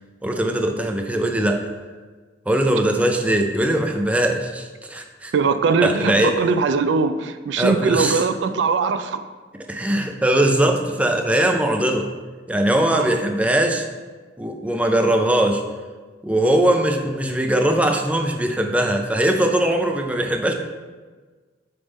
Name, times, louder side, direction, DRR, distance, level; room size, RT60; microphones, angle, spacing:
voice 1, 0.2-1.6 2.5-5.3 5.8-6.4 7.6-8.2 9.7-12.1 12.5-13.9 14.4-15.6 16.2-20.5, right 1 dB, 10° right, 3 dB, 0.4 m, -20 dB
voice 2, 5.3-9.2 12.9-13.1, right 5 dB, 80° right, 10 dB, 0.4 m, -21 dB
6.7 x 3.5 x 4.1 m, 1.4 s
head